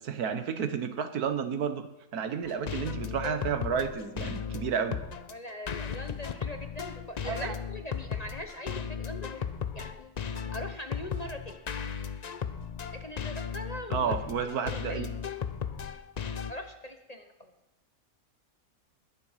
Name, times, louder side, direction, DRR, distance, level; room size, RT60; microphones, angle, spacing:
voice 1, 0.0-1.9 2.1-5.0 7.2-7.5 13.9-15.1, right 7 dB, 80° right, 9 dB, 1.6 m, -31 dB
sound 1, 2.4-16.5, left 7 dB, 55° left, 0.4 m, -36 dB
voice 2, 5.3-9.5 9.7-10.1 10.5-11.6 13.0-14.2 14.6-15.1 16.5-17.5, left 1 dB, 30° left, 6 dB, 0.9 m, -41 dB
20.5 x 7.6 x 5.7 m, 0.94 s
omnidirectional pair, 1.6 m